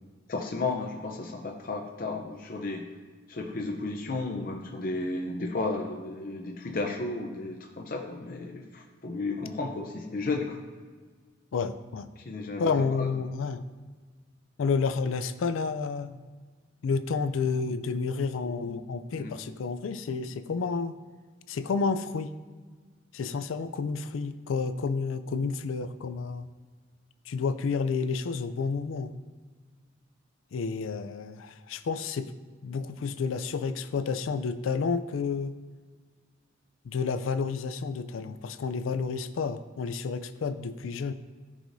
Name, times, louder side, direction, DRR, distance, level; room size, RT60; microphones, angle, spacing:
voice 1, 0.3-2.9 3.3-10.6 12.2-13.1 19.2-19.4, left 3 dB, 45° left, 1 dB, 0.6 m, -33 dB
voice 2, 11.5-12.1 12.6-13.6 14.6-16.2 16.8-20.9 21.5-22.3 23.1-26.5 27.3-29.1 30.5-32.3 32.6-35.6 36.8-41.1, left 5 dB, 90° left, 11 dB, 0.4 m, -30 dB
14.0 x 4.9 x 2.7 m, 1.5 s
head